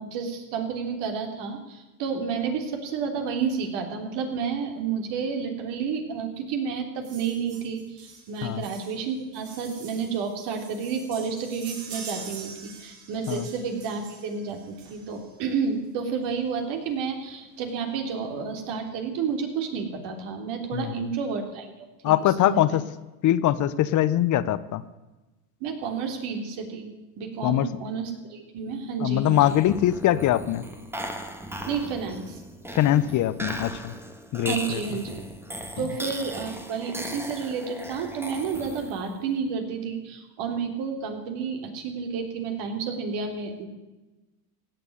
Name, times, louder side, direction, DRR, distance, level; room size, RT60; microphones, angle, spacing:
voice 1, 0.0-21.7 22.0-22.8 25.6-26.9 27.2-29.6 31.7-32.4 34.5-35.1 35.8-43.7, right 6 dB, 55° right, 4 dB, 3.4 m, -31 dB
sound 1, 7.0-15.4 16.5-16.6 16.9-17.0 17.2-17.4 17.7-18.3 18.8-18.9, right 5 dB, 75° right, 5.7 m, -44 dB
voice 2, 20.7-21.1 22.0-22.8 23.2-24.8 27.4-27.7 29.0-30.6 32.7-33.9 34.3-34.8, left 12 dB, 35° left, 16 dB, 0.9 m, -22 dB
sound 2, 29.3-39.2, right 1 dB, 5° right, 1.6 m, -37 dB
16.5 x 8.0 x 9.4 m, 1.1 s
hypercardioid pair, 100°, 49 cm